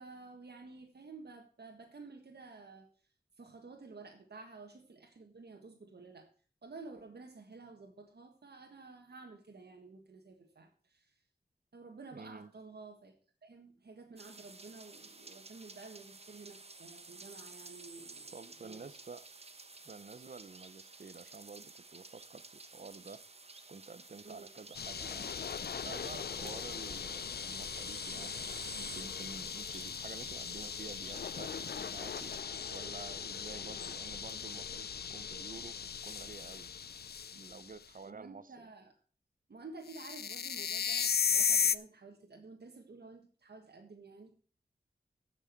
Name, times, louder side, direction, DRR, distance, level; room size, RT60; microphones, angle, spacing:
voice 1, 0.0-2.9 3.4-6.3 6.6-11.2 11.7-13.1 13.4-18.3 18.6-18.9 24.2-24.5 26.3-26.5 33.5-33.7 38.1-38.9 39.5-44.5, right 3 dB, 85° right, 1.7 m, -52 dB
voice 2, 12.1-12.5 18.3-19.3 19.8-23.2 23.7-25.3 25.7-32.3 32.7-36.7 37.3-38.7, right 4 dB, 55° right, 0.8 m, -50 dB
sound 1, 14.2-32.4, right 3 dB, 40° right, 1.2 m, -52 dB
sound 2, 24.7-37.7 39.9-41.8, left 7 dB, 75° left, 0.5 m, -37 dB
sound 3, 28.9-32.2, equal, 20° left, 4.2 m, -63 dB
15.5 x 6.2 x 4.5 m
wide cardioid pair, 90°, 17 cm